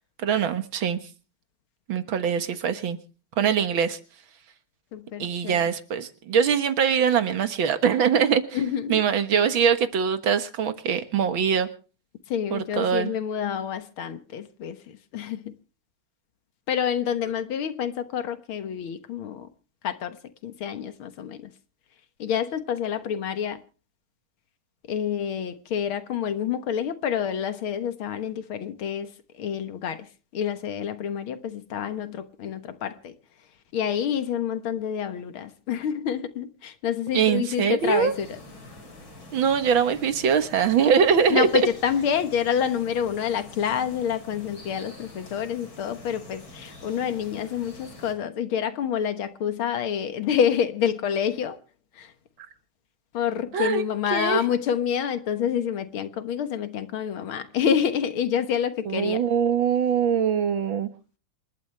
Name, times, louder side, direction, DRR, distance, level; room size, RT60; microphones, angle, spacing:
voice 1, 0.2-1.0 1.9-3.0 3.4-4.0 5.2-8.6 8.9-11.7 12.5-13.1 37.1-38.1 39.3-41.5 53.5-54.4 58.9-60.9, right 7 dB, 70° right, 2.2 m, -23 dB
voice 2, 4.9-5.6 8.5-9.0 12.3-14.8 15.1-15.5 16.7-19.5 19.8-20.2 20.4-21.4 22.2-23.6 24.9-29.1 29.4-30.1 30.3-33.1 33.7-38.3 41.3-51.6 52.0-52.1 53.1-59.2, left 8 dB, 90° left, 2.2 m, -28 dB
sound 1, 37.8-48.1, left 2 dB, 70° left, 4.8 m, -46 dB
27.0 x 12.0 x 3.3 m
omnidirectional pair, 2.2 m